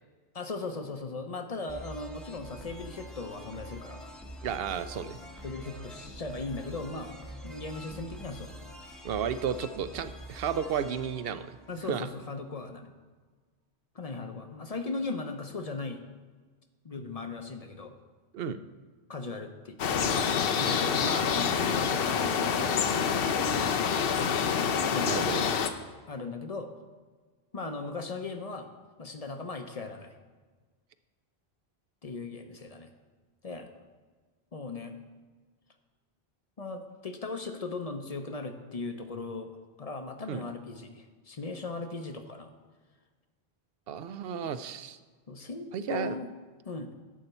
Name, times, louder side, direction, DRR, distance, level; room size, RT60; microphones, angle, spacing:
voice 1, 0.3-4.1 5.4-7.2 7.4-8.5 11.7-12.9 13.9-16.0 16.8-17.9 19.1-23.4 24.9-25.2 26.1-26.7 27.5-28.7 29.0-30.1 32.0-32.9 33.4-33.7 34.5-35.0 36.6-42.5 45.3-46.3 46.6-46.9, left 3 dB, 40° left, 6 dB, 0.8 m, -38 dB
sound 1, 1.7-12.3, equal, ahead, 0.8 m, -45 dB
voice 2, 4.4-5.2 9.0-11.5 11.9-12.1 18.3-18.6 25.0-25.5 40.3-40.4 43.9-45.0 45.7-46.2, right 7 dB, 70° right, 12 dB, 0.8 m, -33 dB
sound 2, 19.8-25.7, left 6 dB, 65° left, 0.8 m, -27 dB
11.0 x 4.3 x 7.9 m, 1.4 s
omnidirectional pair, 1.1 m